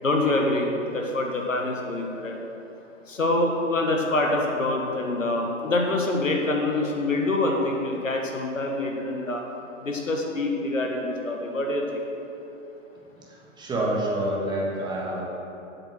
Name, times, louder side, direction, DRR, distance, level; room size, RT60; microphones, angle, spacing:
voice 1, 0.0-2.4 3.1-9.4 9.8-12.0, left 2 dB, 80° left, 1 dB, 1.7 m, -25 dB
voice 2, 13.1-15.2, right 1 dB, 10° right, -3 dB, 1.4 m, -28 dB
7.9 x 7.3 x 6.1 m, 3.0 s
figure-of-eight pair, 115°, 39 cm